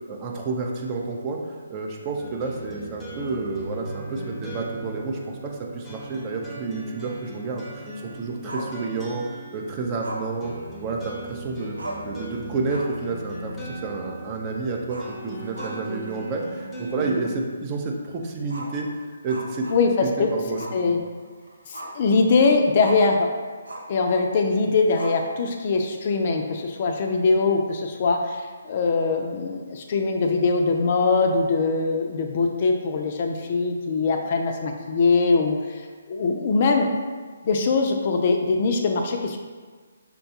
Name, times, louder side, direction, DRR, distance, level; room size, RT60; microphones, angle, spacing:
voice 1, 0.1-1.4 1.7-9.2 9.5-10.5 10.8-11.8 12.0-18.9 19.2-19.7 20.0-21.0, right 3 dB, 25° right, 0 dB, 0.5 m, -30 dB
sound 1, 2.2-17.4, right 1 dB, 5° left, 0.7 m, -38 dB
Growling, 8.5-9.3 10.0-11.2 11.5-11.6 11.8-12.2 12.6-13.1 13.4-13.5 14.8-16.1 16.4-16.5 17.0-17.1 18.4-20.1 20.6-20.8 21.2-22.1 22.8-23.1 23.6-24.0 24.9-25.6, right 1 dB, 90° right, 0.6 m, -38 dB
voice 2, 19.7-21.0 21.7-23.3 23.9-35.8 36.1-36.9 37.4-39.4, left 4 dB, 40° left, 4 dB, 0.4 m, -22 dB
5.4 x 2.2 x 2.8 m, 1.5 s
figure-of-eight pair, 145°, 0 cm